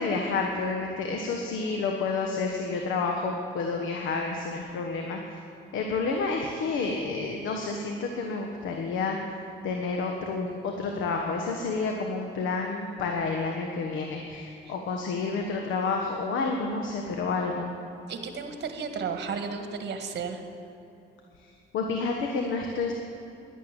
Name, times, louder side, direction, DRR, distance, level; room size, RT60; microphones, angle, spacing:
voice 1, 0.0-5.4 5.7-9.2 9.6-17.7 21.4-21.5 21.7-22.9, left 4 dB, 80° left, 2 dB, 1.3 m, -29 dB
voice 2, 18.1-20.4, right 5 dB, 60° right, 6 dB, 1.7 m, -33 dB
11.5 x 11.0 x 9.1 m, 2.6 s
cardioid pair, 90°, 20 cm